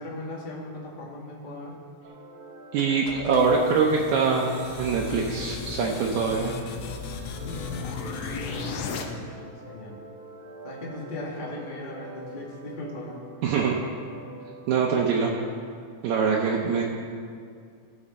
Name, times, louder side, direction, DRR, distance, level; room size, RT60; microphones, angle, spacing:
voice 1, 0.0-1.7 7.3-9.3 9.7-10.0 10.6-13.5, left 1 dB, 20° left, -4 dB, 1.3 m, -38 dB
sound 1, 2.0-15.5, right 1 dB, 60° right, 0.8 m, -45 dB
voice 2, 2.7-4.5 4.8-6.5 13.4-13.7 14.7-15.3 16.0-16.8, right 5 dB, 75° right, -2 dB, 2.2 m, -23 dB
sound 2, 2.8-9.0, left 5 dB, 70° left, 1.8 m, -35 dB
17.0 x 6.6 x 4.3 m, 2.2 s
omnidirectional pair, 3.5 m